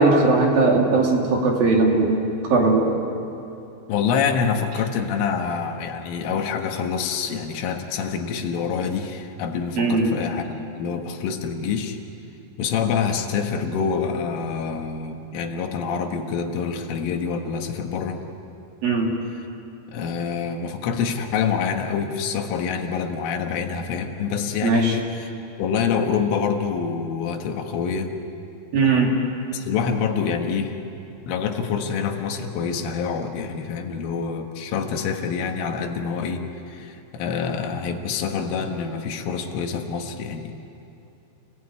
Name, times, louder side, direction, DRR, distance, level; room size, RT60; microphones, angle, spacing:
voice 1, 0.0-2.2 2.5-3.0 9.8-10.1 18.8-19.1 24.6-25.0 28.7-29.1, right 3 dB, 55° right, 0 dB, 3.8 m, -18 dB
voice 2, 3.9-12.0 12.6-18.2 19.9-25.3 25.6-28.1 29.5-30.8 31.3-40.5, left 6 dB, 80° left, 4 dB, 4.0 m, -26 dB
28.5 x 18.0 x 9.6 m, 2.7 s
omnidirectional pair, 5.6 m